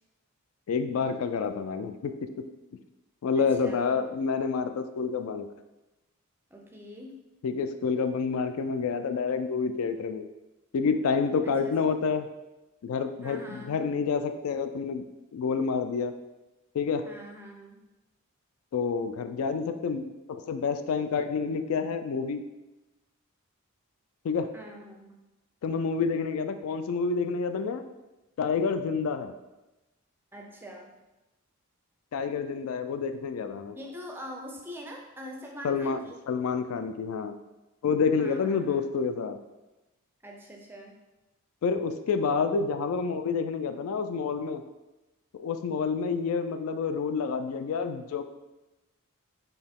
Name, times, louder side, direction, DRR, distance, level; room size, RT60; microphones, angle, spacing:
voice 1, 0.7-2.1 3.2-5.5 7.4-10.3 10.7-12.3 12.8-15.0 15.3-16.1 16.7-17.1 18.7-22.4 24.2-24.5 25.6-27.8 28.4-29.3 32.1-33.8 35.6-36.0 36.3-37.4 37.8-39.4 41.6-44.6 45.3-48.2, left 5 dB, 75° left, 8 dB, 0.3 m, -28 dB
voice 2, 3.4-4.0 6.5-7.3 11.4-11.8 13.2-13.8 17.1-17.9 24.5-25.1 30.3-31.0 33.7-36.2 38.2-38.8 40.2-41.0, equal, 10° right, 1 dB, 0.4 m, -44 dB
4.3 x 2.9 x 3.6 m, 1.0 s
head